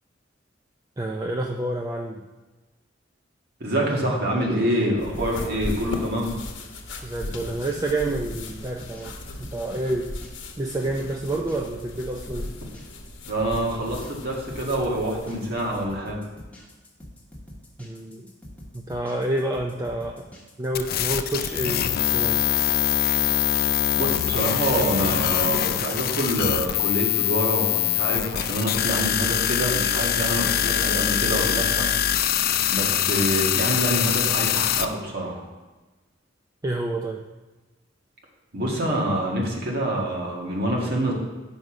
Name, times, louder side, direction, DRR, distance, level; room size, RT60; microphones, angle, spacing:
voice 1, 1.0-2.3 7.0-10.1 10.6-12.5 17.8-18.3 18.7-22.4 36.6-37.2, right 1 dB, 20° right, 2 dB, 0.4 m, -29 dB
voice 2, 3.6-6.4 13.3-16.2 23.9-35.4 38.5-41.1, right 1 dB, 55° right, -2 dB, 1.8 m, -26 dB
sound 1, 5.0-15.9, left 1 dB, 70° left, 0.9 m, -37 dB
sound 2, 7.2-21.0, equal, 10° left, 1.4 m, -45 dB
sound 3, 20.7-34.9, left 11 dB, 50° left, 0.4 m, -23 dB
8.0 x 5.3 x 4.9 m, 1.2 s
head